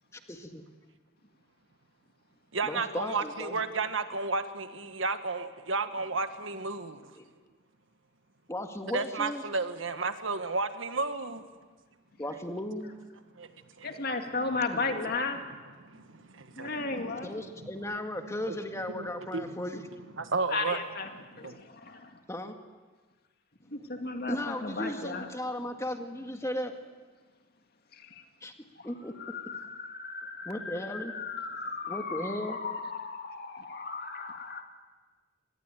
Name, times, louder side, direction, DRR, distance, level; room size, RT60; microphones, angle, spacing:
voice 1, 0.3-0.6 2.6-3.6 7.2-7.3 8.5-9.4 12.2-12.9 14.7-15.1 17.2-19.8 22.3-22.5 24.3-26.7 28.4-28.5 28.8-29.1 30.5-31.1 31.9-32.6, left 1 dB, 15° left, 1.9 m, -36 dB
voice 2, 2.5-7.1 8.9-11.4 13.4-13.5 13.8-13.9 14.3-14.5 15.8-17.3 17.6-17.8 18.5-18.6 18.9-19.5 20.2-20.8 21.4-21.6, right 3 dB, 70° right, 1.6 m, -33 dB
voice 3, 13.8-15.4 16.6-17.4 20.5-21.1 21.4-22.2 23.7-25.3 27.9-28.1 28.8-28.9 29.2-34.6, left 3 dB, 50° left, 2.3 m, -35 dB
26.0 x 20.0 x 9.1 m
head